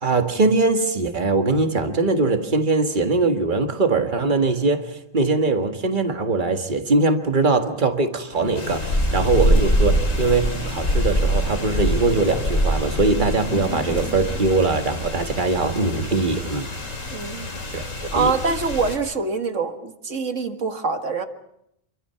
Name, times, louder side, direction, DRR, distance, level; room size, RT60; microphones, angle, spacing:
voice 1, 0.0-16.7 17.7-18.4, right 3 dB, 40° right, 6 dB, 1.9 m, -21 dB
sound 1, 8.3-14.1, left 2 dB, 60° left, 6.2 m, -37 dB
sound 2, 8.6-19.0, equal, 85° left, 3.9 m, -24 dB
voice 2, 17.1-17.5 18.1-21.2, right 4 dB, 75° right, 6 dB, 2.2 m, -24 dB
27.5 x 24.0 x 5.8 m, 0.78 s
omnidirectional pair, 1.3 m